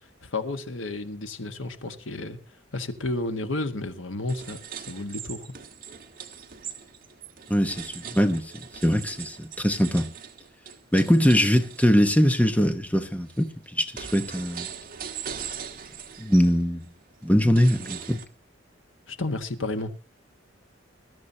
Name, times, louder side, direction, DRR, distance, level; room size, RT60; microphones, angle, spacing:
voice 1, 0.2-2.4 2.7-5.5 19.1-19.9, left 2 dB, 85° left, 1.6 m, -32 dB
sound 1, 4.3-12.1 12.7-18.3, right 8 dB, 50° right, 1.6 m, -41 dB
voice 2, 7.5-8.5 8.8-10.1 10.9-14.7 16.2-16.8 17.2-18.2, equal, 10° left, 1.0 m, -22 dB
21.0 x 13.0 x 2.8 m
head